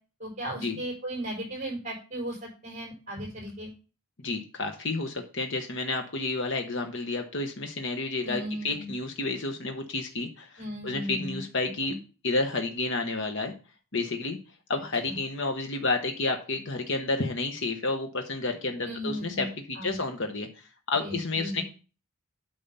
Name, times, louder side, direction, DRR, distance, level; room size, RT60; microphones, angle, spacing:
voice 1, 0.2-3.7 8.2-8.9 10.6-11.4 11.8-11.9 15.0-15.2 18.8-19.5 19.7-20.0 21.0-21.6, equal, 30° right, -4 dB, 5.0 m, -36 dB
voice 2, 4.2-11.9 12.2-13.5 13.9-14.4 14.7-20.5 20.9-21.6, left 3 dB, 55° left, 5 dB, 1.1 m, -30 dB
8.8 x 5.4 x 5.6 m, 0.34 s
head